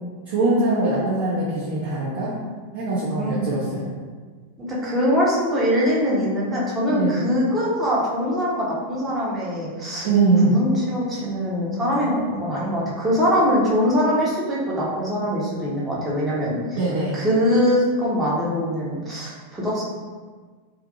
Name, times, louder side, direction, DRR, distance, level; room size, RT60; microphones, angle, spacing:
voice 1, 0.3-2.4 2.7-3.8 6.9-7.2 10.0-10.5 16.8-17.2, right 3 dB, 55° right, -9 dB, 0.7 m, -22 dB
voice 2, 3.2-3.5 4.6-10.1 10.4-16.8 17.1-19.8, equal, 15° right, -6 dB, 0.8 m, -23 dB
2.7 x 2.3 x 2.6 m, 1.5 s
figure-of-eight pair, 90°, 0 cm